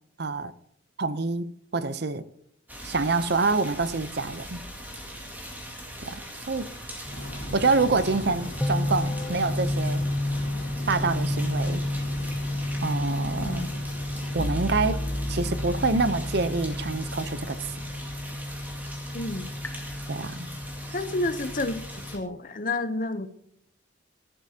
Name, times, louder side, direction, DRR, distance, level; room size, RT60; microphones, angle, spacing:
voice 1, 0.2-0.5 1.0-2.3 2.8-4.6 6.0-6.2 6.5-6.7 7.5-10.0 10.9-11.8 12.8-13.6 14.3-17.7 20.1-20.5, right 3 dB, 55° right, 0.7 m, -26 dB
sound 1, 2.7-22.2, equal, 10° right, 2.1 m, -41 dB
sound 2, 7.1-19.4, equal, 80° left, 2.5 m, -41 dB
sound 3, 7.1-22.2, left 1 dB, 10° left, 0.8 m, -32 dB
voice 2, 13.4-13.7 19.1-19.5 20.9-23.3, left 2 dB, 40° left, 0.7 m, -30 dB
19.5 x 11.0 x 2.9 m
head